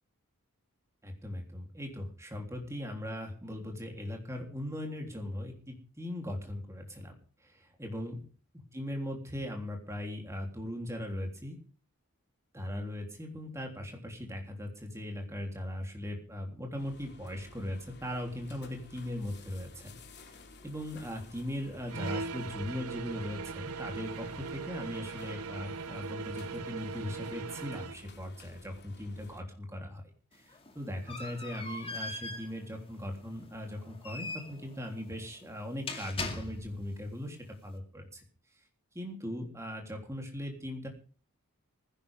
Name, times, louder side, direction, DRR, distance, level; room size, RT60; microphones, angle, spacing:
voice 1, 1.0-7.2 7.4-8.2 8.7-11.6 12.5-19.9 20.6-30.0 30.3-38.2 38.9-40.9, left 1 dB, 15° right, 2 dB, 3.3 m, -39 dB
sound 1, 16.8-29.4, left 2 dB, 50° left, 2.6 m, -54 dB
sound 2, 21.9-28.0, right 5 dB, 80° right, 0.8 m, -40 dB
sound 3, 30.3-36.9, left 2 dB, 25° left, 2.3 m, -42 dB
19.5 x 16.0 x 3.6 m, 0.41 s
head